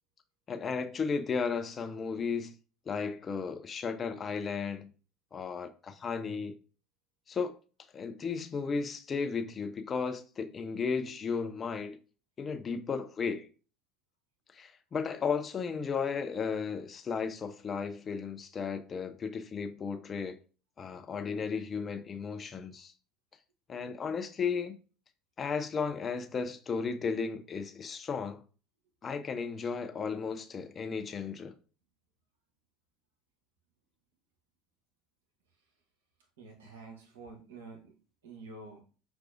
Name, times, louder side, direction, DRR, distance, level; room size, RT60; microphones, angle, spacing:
voice 1, 0.5-2.5 2.9-4.9 5.3-6.5 7.3-7.5 7.9-12.0 12.4-13.5 14.5-20.4 20.8-22.9 23.7-24.8 25.4-28.4 29.0-31.5, left 5 dB, 30° left, 0.5 m, -34 dB
voice 2, 36.4-37.9 38.2-38.8, right 3 dB, 75° right, 0.8 m, -48 dB
5.9 x 2.3 x 2.4 m
hypercardioid pair, 70°, 0 cm